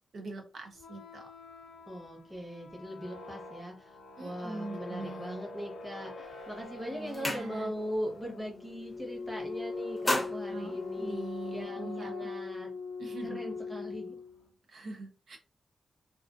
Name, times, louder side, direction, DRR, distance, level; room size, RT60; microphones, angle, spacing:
voice 1, 0.1-1.3 4.2-5.4 6.9-7.7 10.5-12.3 13.0-13.4 14.7-15.4, right 2 dB, 60° right, 3 dB, 0.5 m, -42 dB
sound 1, 0.7-14.5, left 4 dB, 75° left, 0.5 m, -42 dB
voice 2, 1.9-12.7 13.2-14.2, equal, 10° right, -1 dB, 0.9 m, -40 dB
sound 2, 6.2-6.5 6.8-8.0 8.3-8.6 8.9-9.4 9.8-11.6, left 2 dB, 20° left, 0.6 m, -35 dB
2.3 x 2.3 x 2.4 m, 0.32 s
wide cardioid pair, 120°, 0 cm